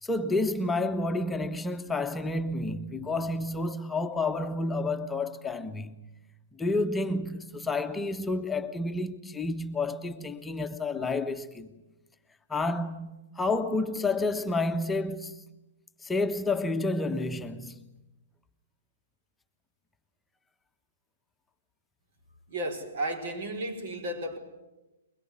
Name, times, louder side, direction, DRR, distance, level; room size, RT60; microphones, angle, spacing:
voice 1, 0.0-6.0 6.6-11.7 12.5-15.4 16.0-17.8, left 2 dB, 10° left, 1.3 m, -30 dB
voice 2, 22.5-24.4, right 1 dB, 60° right, 5.3 m, -33 dB
23.0 x 21.5 x 9.8 m
figure-of-eight pair, 120°, 0 cm